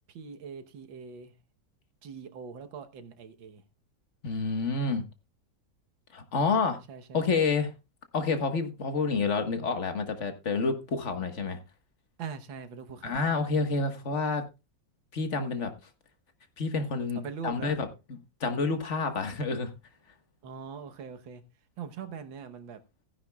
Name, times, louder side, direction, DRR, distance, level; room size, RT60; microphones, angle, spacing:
voice 1, 0.1-1.3 2.0-3.6 6.9-7.3 12.2-13.2 17.2-17.8 20.4-21.4 21.8-22.8, right 6 dB, 85° right, 8 dB, 1.9 m, -42 dB
voice 2, 4.2-5.0 6.1-6.8 7.1-7.7 8.1-11.6 13.0-14.4 15.1-15.7 16.6-19.7, left 4 dB, 40° left, 7 dB, 1.6 m, -29 dB
16.0 x 10.5 x 2.3 m, 0.27 s
omnidirectional pair, 2.0 m